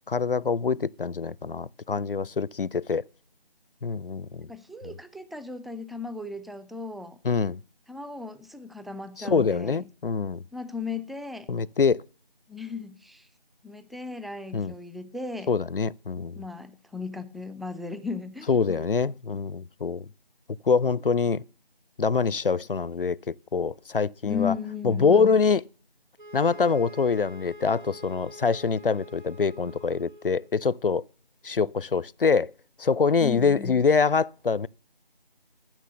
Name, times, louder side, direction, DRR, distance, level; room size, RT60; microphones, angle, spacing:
voice 1, 0.1-3.0 3.8-4.5 4.8-4.9 7.2-7.6 9.2-10.4 11.5-12.0 14.5-14.7 15.5-16.4 18.5-20.1 20.7-21.4 22.0-24.5 24.8-25.6 26.3-31.0 31.4-32.5 32.8-34.7, left 5 dB, 65° left, 0.5 m, -25 dB
voice 2, 4.5-7.2 7.9-9.8 10.5-11.5 12.5-13.3 13.6-15.5 16.4-18.8 24.2-25.3 33.2-33.7, left 5 dB, ahead, 0.4 m, -36 dB
sound 1, 26.2-30.6, equal, 55° right, 1.3 m, -46 dB
12.0 x 6.3 x 6.6 m
figure-of-eight pair, 180°, 29 cm